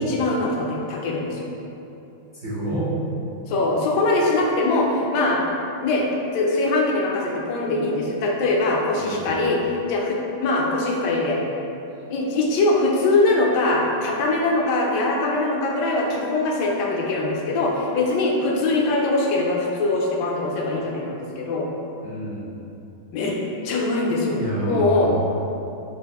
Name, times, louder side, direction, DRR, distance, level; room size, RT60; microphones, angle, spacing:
voice 1, 0.0-1.5 3.5-5.4 5.8-11.4 12.1-21.7 23.1-23.3 23.6-25.1, left 2 dB, 70° left, -2 dB, 1.0 m, -22 dB
voice 2, 2.4-2.9 8.9-9.4 22.0-22.6 24.3-25.1, right 1 dB, 60° right, -13 dB, 0.5 m, -29 dB
4.0 x 2.5 x 3.4 m, 2.8 s
omnidirectional pair, 2.2 m